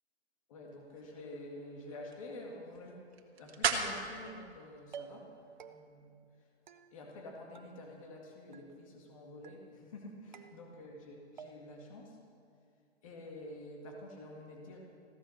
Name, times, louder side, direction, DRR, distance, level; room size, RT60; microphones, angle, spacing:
voice 1, 0.5-3.0 3.4-5.3 5.6-6.2 6.9-12.2 13.0-14.8, left 1 dB, 30° left, -1 dB, 1.9 m, -48 dB
sound 1, 0.7-5.8, right 5 dB, 65° right, 1.9 m, -40 dB
sound 2, 4.3-4.6 4.9-5.3 5.6-6.1 6.7-7.3 7.5-8.2 8.5-9.1 9.4-10.0 10.3-11.0 11.4-11.9, right 7 dB, 45° right, 0.7 m, -53 dB
16.0 x 12.0 x 6.3 m, 2.4 s
hypercardioid pair, 170°, 34 cm